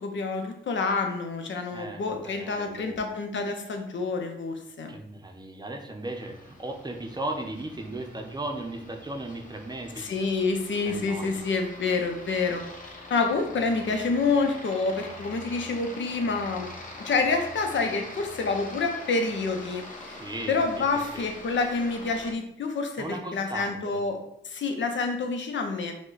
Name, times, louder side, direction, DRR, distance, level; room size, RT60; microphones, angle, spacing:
voice 1, 0.0-4.9 10.0-12.6 13.1-16.7 17.0-20.1 20.5-25.9, left 4 dB, 85° left, 4 dB, 0.7 m, -28 dB
voice 2, 1.7-3.0 4.9-10.3 10.9-11.4 20.1-21.3 23.0-24.0, right 1 dB, 20° right, 3 dB, 0.6 m, -37 dB
Aircraft, 6.0-22.3, left 2 dB, 45° left, 0.9 m, -44 dB
5.0 x 2.2 x 3.9 m, 0.75 s
wide cardioid pair, 95°, 19 cm